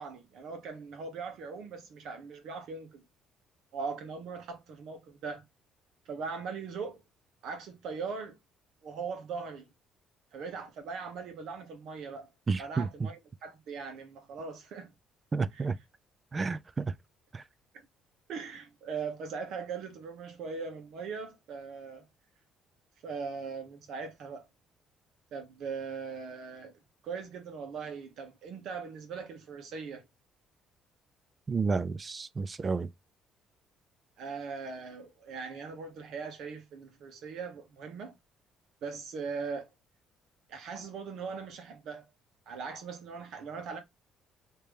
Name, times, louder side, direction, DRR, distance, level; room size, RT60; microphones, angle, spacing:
voice 1, 0.0-3.0 3.7-5.4 6.0-7.0 7.4-8.4 8.8-9.7 10.3-12.3 12.6-14.9 15.5-15.7 18.3-22.0 23.0-24.4 25.3-30.0 34.2-38.2 38.8-39.7 40.5-42.0 42.5-43.8, right 5 dB, 65° right, 1.1 m, -40 dB
voice 2, 12.5-13.1 15.3-15.8 16.3-16.9 17.3-17.4 31.5-32.9, right 4 dB, 25° right, 0.3 m, -31 dB
3.3 x 2.9 x 3.3 m
cardioid pair, 145°, 0 cm